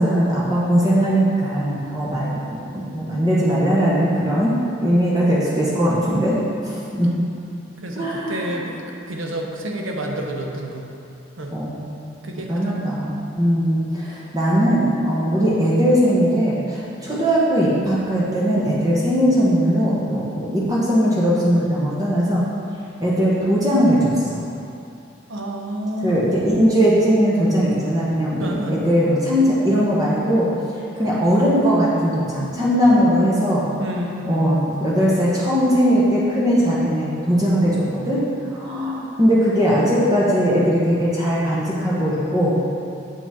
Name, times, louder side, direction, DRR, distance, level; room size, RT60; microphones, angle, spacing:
voice 1, 0.0-6.4 6.6-7.1 7.9-8.6 11.5-11.8 12.5-22.4 23.0-24.4 26.0-30.5 31.0-33.7 34.2-38.2 38.5-42.5, equal, 20° right, -7 dB, 0.8 m, -19 dB
voice 2, 5.3-5.8 7.8-10.9 11.4-11.6 12.2-12.8 25.3-26.3 28.4-28.8 33.8-34.5, right 1 dB, 75° right, 1 dB, 0.7 m, -29 dB
7.2 x 5.0 x 3.5 m, 2.6 s
head